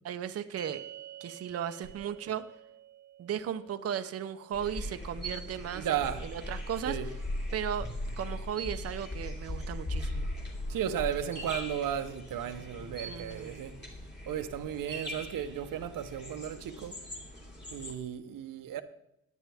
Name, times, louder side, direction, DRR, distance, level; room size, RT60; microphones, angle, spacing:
voice 1, 0.0-0.8 1.2-2.4 3.2-7.0 7.5-7.9 8.2-10.3 13.0-13.6, right 9 dB, 50° right, 0.6 m, -36 dB
sound 1, 0.6-7.1, right 10 dB, 65° right, 1.1 m, -51 dB
sound 2, 4.5-18.0, left 1 dB, 35° left, 2.7 m, -39 dB
voice 2, 5.7-6.3 6.8-7.1 10.7-13.8 14.3-17.0 17.7-18.8, right 9 dB, 85° right, 0.9 m, -34 dB
16.5 x 10.0 x 3.5 m
wide cardioid pair, 150°, 32 cm